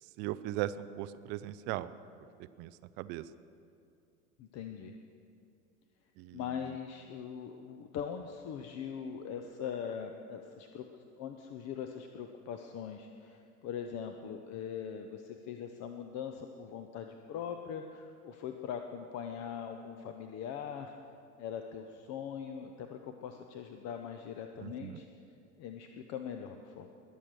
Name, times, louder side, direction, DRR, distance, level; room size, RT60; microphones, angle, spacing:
voice 1, 0.0-1.9 2.6-3.3 6.2-6.5 24.6-25.0, right 14 dB, 25° right, 14 dB, 0.4 m, -38 dB
voice 2, 4.4-4.9 6.3-10.9 11.2-20.9 21.4-25.1 25.6-26.9, left 8 dB, 35° left, 6 dB, 0.9 m, -41 dB
21.5 x 7.4 x 6.4 m, 2.5 s
figure-of-eight pair, 85°, 45 cm